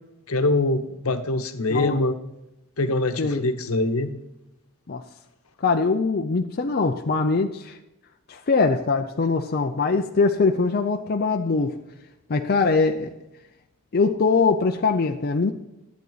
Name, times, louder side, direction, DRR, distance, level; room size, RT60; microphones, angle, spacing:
voice 1, 0.3-2.2 2.8-4.1, left 2 dB, 80° left, 8 dB, 1.0 m, -23 dB
voice 2, 5.6-7.8 8.3-11.8 12.3-13.1 13.9-15.5, left 4 dB, 45° left, 4 dB, 0.5 m, -22 dB
12.0 x 8.2 x 4.0 m, 0.92 s
head